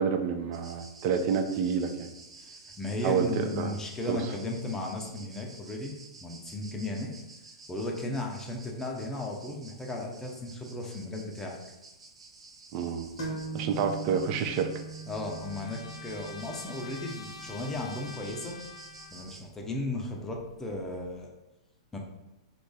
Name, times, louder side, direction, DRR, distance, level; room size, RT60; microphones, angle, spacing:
voice 1, 0.0-2.1 3.0-3.7 4.1-4.3 12.7-13.1 13.5-14.7, right 6 dB, 40° right, 6 dB, 0.4 m, -28 dB
sound 1, 0.5-19.4, right 3 dB, 80° right, 0.6 m, -51 dB
voice 2, 2.4-7.1 7.7-11.6 15.1-18.6 19.1-21.3 21.9-22.0, left 2 dB, 15° left, 0 dB, 0.6 m, -35 dB
sound 2, 13.2-20.7, right 4 dB, 55° left, 0.8 m, -43 dB
Trumpet, 14.5-19.4, left 5 dB, 75° left, 0.4 m, -48 dB
3.0 x 2.5 x 3.8 m, 0.96 s
figure-of-eight pair, 105°, 3 cm